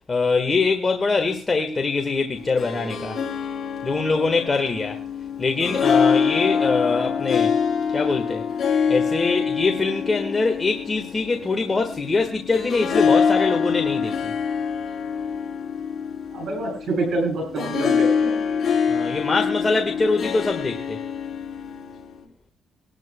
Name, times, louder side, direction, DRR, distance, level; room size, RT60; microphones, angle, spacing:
voice 1, 0.1-3.2 3.8-5.0 5.4-7.5 7.9-8.4 8.9-14.3 18.9-21.0, left 3 dB, 30° left, 1.6 m, -23 dB
Harp, 2.4-22.2, left 6 dB, 50° left, 3.9 m, -25 dB
voice 2, 16.3-18.4, right 2 dB, 55° right, 7.5 m, -26 dB
24.0 x 12.0 x 2.3 m
cardioid pair, 90°, 0 cm